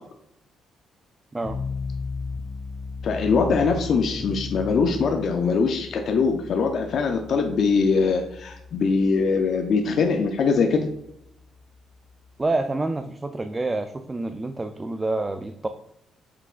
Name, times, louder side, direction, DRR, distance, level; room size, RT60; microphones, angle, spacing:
sound 1, 1.4-12.6, left 4 dB, 30° left, 0.7 m, -37 dB
voice 1, 3.0-10.9, left 4 dB, 65° left, 4 dB, 0.5 m, -22 dB
voice 2, 12.4-15.7, right 2 dB, 20° right, 8 dB, 0.3 m, -27 dB
5.7 x 3.5 x 2.4 m, 0.78 s
cardioid pair, 90°, 0 cm